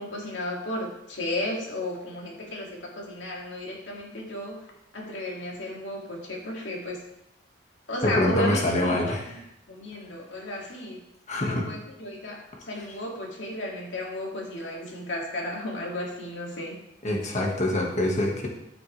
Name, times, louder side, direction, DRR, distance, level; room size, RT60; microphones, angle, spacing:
voice 1, 0.0-4.6 4.9-7.0 7.9-9.4 9.7-11.0 11.4-12.4 12.7-16.8, left 1 dB, 75° left, -2 dB, 2.5 m, -34 dB
voice 2, 8.0-9.4 11.3-11.7 12.8-12.9 17.0-18.5, left 1 dB, 40° left, 0 dB, 1.8 m, -25 dB
13.5 x 6.1 x 3.4 m, 0.81 s
head